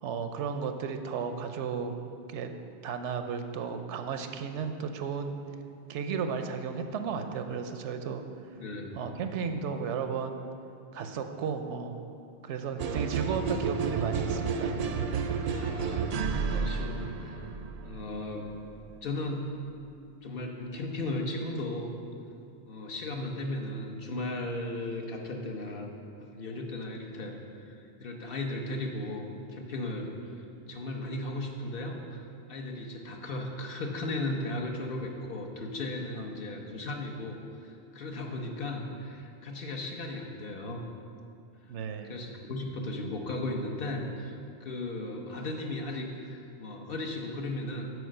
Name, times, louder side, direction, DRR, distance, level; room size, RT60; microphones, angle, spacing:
voice 1, 0.0-1.9 2.3-2.5 2.8-5.4 5.9-8.2 9.0-10.4 10.9-12.0 12.4-14.7 41.7-42.2, right 6 dB, 85° right, 7 dB, 0.9 m, -34 dB
voice 2, 8.6-9.0 15.5-16.1 16.5-17.4 17.8-18.5 19.0-19.5 20.2-21.9 22.7-25.9 26.2-29.3 29.5-30.4 30.7-32.2 32.5-40.8 42.0-47.8, left 2 dB, 55° left, 2 dB, 1.0 m, -36 dB
sound 1, 12.8-18.7, right 5 dB, 60° right, 0.4 m, -31 dB
8.0 x 4.9 x 6.5 m, 2.5 s
omnidirectional pair, 1.2 m